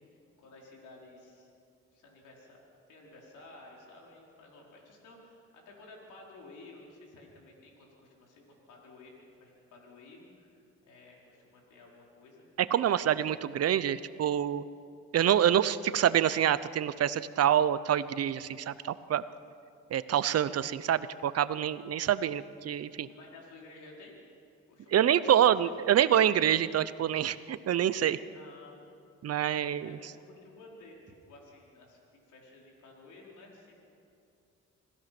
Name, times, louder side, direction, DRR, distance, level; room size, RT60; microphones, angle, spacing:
voice 1, 0.1-1.5 1.9-2.6 2.9-12.5 21.6-21.7 23.1-24.2 24.7-25.7 26.0-26.3 28.3-28.8 29.8-33.9, left 2 dB, 80° left, -2 dB, 4.9 m, -53 dB
voice 2, 12.6-14.6 15.1-19.2 19.9-23.1 24.9-28.2 29.2-30.0, right 10 dB, 55° right, 15 dB, 0.8 m, -26 dB
26.5 x 16.5 x 6.1 m, 2.5 s
cardioid pair, 90°, 30 cm